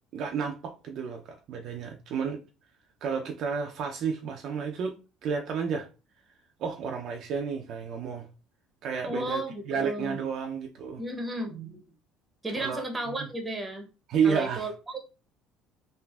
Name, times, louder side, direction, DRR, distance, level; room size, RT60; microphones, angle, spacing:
voice 1, 0.1-2.4 3.0-5.0 5.2-5.9 6.6-8.3 8.8-9.4 9.7-11.0 12.6-12.8 13.2-13.3 14.1-14.7, right 6 dB, 60° right, 0.4 m, -31 dB
voice 2, 9.0-10.2 11.0-11.8 12.4-13.9 14.2-15.0, right 1 dB, 15° right, 0.8 m, -34 dB
3.2 x 2.5 x 2.3 m
supercardioid pair, 100°, 0 cm